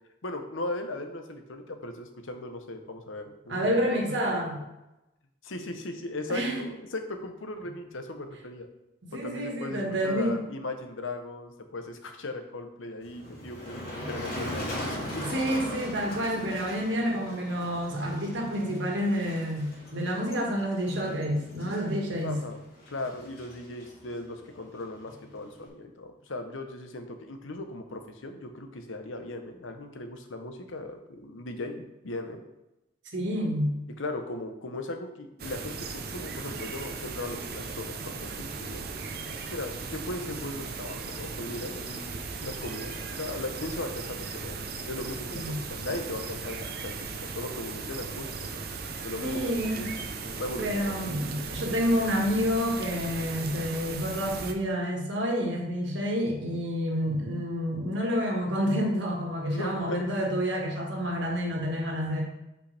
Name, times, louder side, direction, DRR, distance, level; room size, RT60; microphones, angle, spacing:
voice 1, 0.2-3.7 4.3-4.5 5.4-8.7 9.1-15.2 22.2-32.4 34.0-38.8 39.5-44.6 44.9-48.5 49.0-49.9 50.4-51.0 59.5-60.0, left 2 dB, 85° left, 6 dB, 0.9 m, -38 dB
voice 2, 3.5-4.6 6.3-6.6 9.1-10.4 15.3-22.4 33.1-33.7 45.3-45.6 49.2-49.9 50.6-62.2, equal, 70° right, 0 dB, 1.8 m, -29 dB
Motor vehicle (road), 13.0-25.7, equal, 50° left, 2.0 m, -40 dB
sound 1, 35.4-54.5, right 4 dB, 50° right, 0.7 m, -37 dB
8.1 x 5.4 x 3.4 m, 0.95 s
head